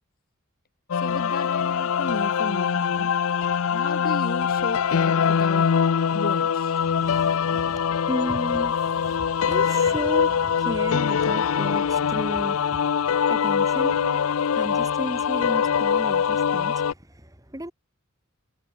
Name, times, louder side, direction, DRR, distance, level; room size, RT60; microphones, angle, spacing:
sound 1, 0.9-16.9, left 7 dB, 85° left, 0.5 m, -23 dB
voice 1, 0.9-3.1 3.7-5.7 6.1-6.8, left 2 dB, 45° left, 3.2 m, -34 dB
voice 2, 6.8-12.8 13.3-14.2 14.5-16.8 17.2-17.7, equal, 15° right, 5.7 m, -34 dB
head